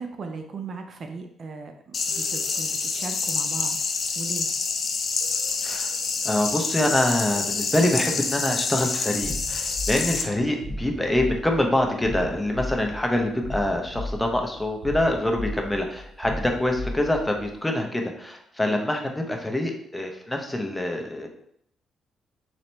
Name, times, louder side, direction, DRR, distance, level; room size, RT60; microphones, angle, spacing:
voice 1, 0.0-4.5, right 4 dB, 50° right, 5 dB, 0.5 m, -37 dB
sound 1, 1.9-10.2, left 4 dB, 50° left, 0.5 m, -27 dB
voice 2, 5.6-6.0 6.2-21.3, left 1 dB, 10° left, 2 dB, 0.7 m, -25 dB
sound 2, 9.2-17.5, left 1 dB, 80° right, 1.6 m, -35 dB
4.1 x 2.8 x 3.3 m, 0.70 s
cardioid pair, 90°, 0 cm